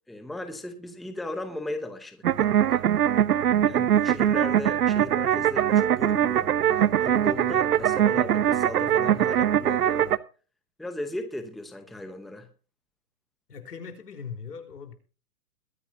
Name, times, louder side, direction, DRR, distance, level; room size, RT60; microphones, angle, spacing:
voice 1, 0.1-2.8 3.7-6.5 7.0-10.2 10.8-12.5, left 1 dB, ahead, 0.8 m, -36 dB
sound 1, 2.2-10.2, right 10 dB, 75° right, 0.9 m, -22 dB
voice 2, 13.5-14.9, left 6 dB, 85° left, 4.0 m, -40 dB
22.0 x 9.8 x 2.7 m
hypercardioid pair, 150°, 45 cm